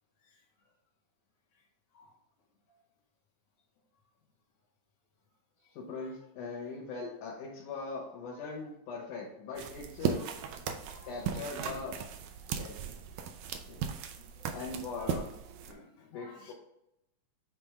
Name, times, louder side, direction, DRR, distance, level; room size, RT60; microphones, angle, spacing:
voice 1, 5.7-10.3 11.0-12.1 12.5-12.8 13.7-14.0 14.5-15.3 16.1-16.5, left 4 dB, 85° left, -4 dB, 2.8 m, -41 dB
sound 1, 9.6-15.7, right 7 dB, 75° right, 1.8 m, -37 dB
voice 2, 10.2-11.8 12.4-12.5 14.3-14.5 14.9-15.2 15.7-16.5, left 1 dB, 55° left, -4 dB, 2.6 m, -56 dB
8.8 x 3.2 x 3.5 m, 0.83 s
omnidirectional pair, 3.5 m